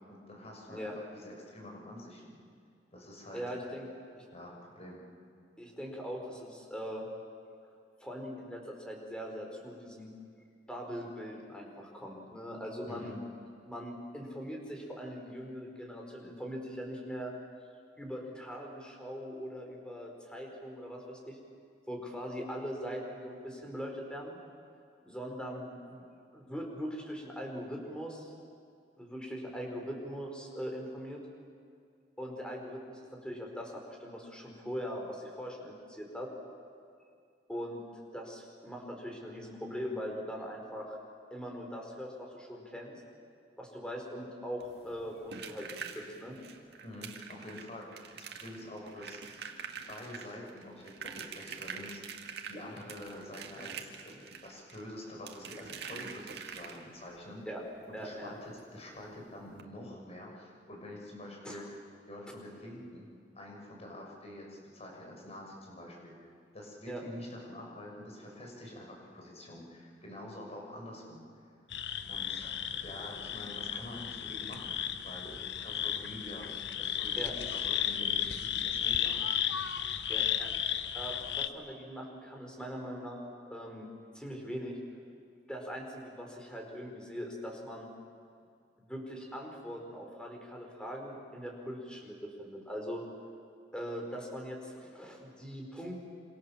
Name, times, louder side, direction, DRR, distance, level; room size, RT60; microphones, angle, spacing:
voice 1, 0.1-2.2 2.9-3.4 4.3-5.0 12.8-13.2 46.8-54.2 54.4-57.4 57.9-61.8 62.1-63.1 63.3-71.2 72.1-74.8 75.0-76.5 76.8-79.4, left 1 dB, 40° left, -1 dB, 6.6 m, -47 dB
voice 2, 3.3-3.9 4.2-4.3 5.6-7.1 8.0-10.1 10.7-13.1 13.6-17.3 18.0-21.4 21.9-24.4 25.0-26.0 26.3-28.3 29.0-31.2 32.2-36.3 37.5-41.0 41.3-43.0 43.6-46.4 49.8-49.9 57.4-57.6 57.9-58.3 61.4-61.7 66.9-67.0 77.1-77.3 80.1-80.5 80.9-83.2 83.5-83.9 84.1-84.8 85.5-87.9 88.8-93.0 93.7-96.0, equal, 5° left, 1 dB, 5.1 m, -41 dB
sound 1, 44.6-57.1 58.6-58.7 59.0-59.1 59.5-59.6, right 6 dB, 65° right, 2.2 m, -45 dB
sound 2, 71.7-81.5, left 9 dB, 70° left, 1.1 m, -34 dB
27.5 x 27.5 x 7.4 m, 2.3 s
head